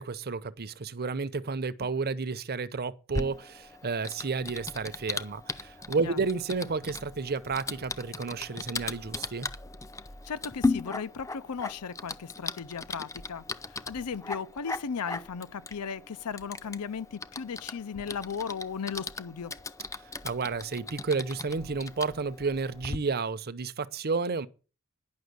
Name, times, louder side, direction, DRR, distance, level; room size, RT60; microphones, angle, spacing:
voice 1, 0.0-9.5 20.2-24.5, right 4 dB, 45° right, 0.7 m, -31 dB
Typing, 3.1-23.0, left 3 dB, 15° left, 0.5 m, -38 dB
voice 2, 10.3-19.5, left 6 dB, 85° left, 0.6 m, -36 dB
10.5 x 6.0 x 8.0 m
head